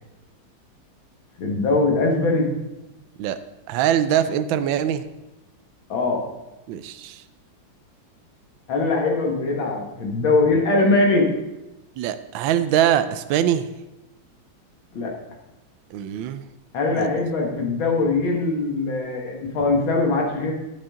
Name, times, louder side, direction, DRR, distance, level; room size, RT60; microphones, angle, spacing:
voice 1, 1.4-2.5 5.9-6.2 8.7-11.3 14.9-15.1 16.7-20.5, left 3 dB, 70° left, 0 dB, 2.5 m, -21 dB
voice 2, 3.7-5.0 6.7-7.2 12.0-13.7 15.9-16.4 16.9-17.1, right 10 dB, 75° right, 10 dB, 1.3 m, -22 dB
12.0 x 8.7 x 3.7 m, 1.0 s
omnidirectional pair, 2.2 m